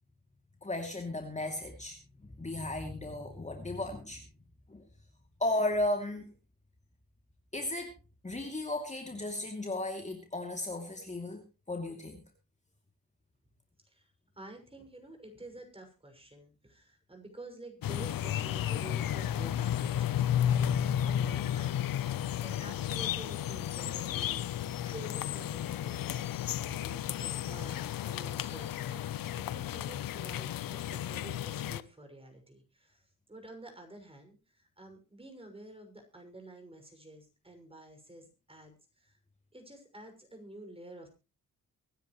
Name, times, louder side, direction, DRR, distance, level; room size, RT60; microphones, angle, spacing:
voice 1, 0.6-2.0 2.4-4.2 4.7-4.8 5.4-6.3 7.5-7.9 8.2-12.2, left 1 dB, 20° left, 3 dB, 2.9 m, -35 dB
voice 2, 13.8-20.3 20.6-39.2 39.5-41.1, right 1 dB, 15° right, 4 dB, 6.3 m, -50 dB
sound 1, 17.8-31.8, left 10 dB, 75° left, 0.8 m, -33 dB
24.5 x 10.0 x 3.2 m, 0.30 s
cardioid pair, 70°, 34 cm